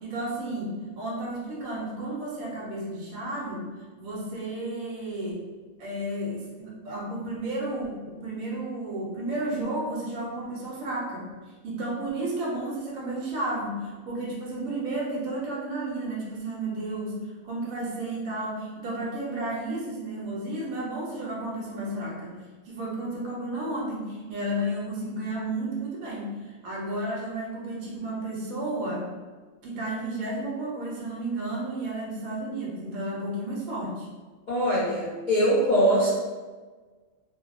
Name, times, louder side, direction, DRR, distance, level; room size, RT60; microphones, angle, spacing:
voice 1, 0.0-3.7 4.0-5.5 5.8-11.3 11.6-22.4 22.7-29.1 29.6-34.1, right 1 dB, 85° right, -3 dB, 1.1 m, -32 dB
voice 2, 34.5-36.1, equal, 40° left, -11 dB, 0.7 m, -22 dB
2.5 x 2.0 x 2.4 m, 1.4 s
omnidirectional pair, 1.4 m